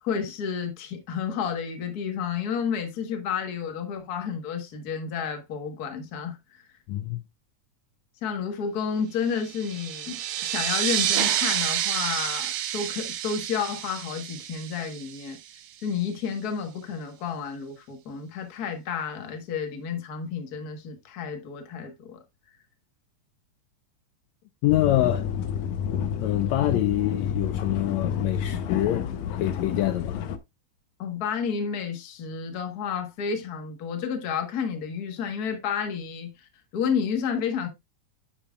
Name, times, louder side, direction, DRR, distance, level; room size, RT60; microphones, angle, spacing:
voice 1, 0.0-6.4 8.2-15.4 15.8-22.2 31.0-37.7, left 6 dB, 50° left, 1.1 m, -31 dB
voice 2, 6.9-7.2 24.6-25.3 26.2-30.2, left 14 dB, 90° left, 1.5 m, -26 dB
sound 1, 9.4-15.6, right 11 dB, 70° right, 1.9 m, -29 dB
sound 2, 24.7-30.4, left 8 dB, 70° left, 1.8 m, -29 dB
9.7 x 7.2 x 2.4 m
omnidirectional pair, 3.7 m